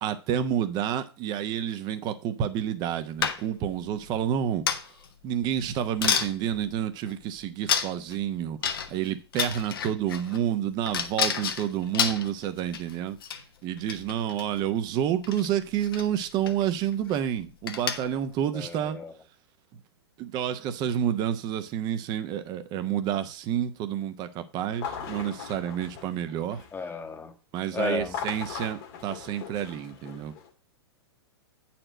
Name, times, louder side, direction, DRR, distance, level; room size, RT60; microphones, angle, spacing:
voice 1, 0.0-4.9 5.2-13.2 13.6-19.0 20.2-26.7 27.5-30.3, right 10 dB, 30° right, 0.9 m, -29 dB
sound 1, 3.2-3.7 4.7-5.1 5.6-5.7 6.0-6.3 7.1-7.2 7.7-8.1 8.6-9.1 9.3-10.4 10.9-12.9 13.2-13.4 13.8-14.5 15.2-15.5 15.8-16.1 16.4-16.6 16.9-17.2 17.7-18.2, left 7 dB, 60° left, 1.0 m, -29 dB
voice 2, 18.5-19.1 26.7-27.3 27.7-28.2, left 4 dB, 15° left, 1.2 m, -33 dB
sound 2, 24.7-26.9 28.0-30.5, left 7 dB, 45° left, 1.6 m, -39 dB
8.8 x 4.4 x 6.2 m
figure-of-eight pair, 105°, 14 cm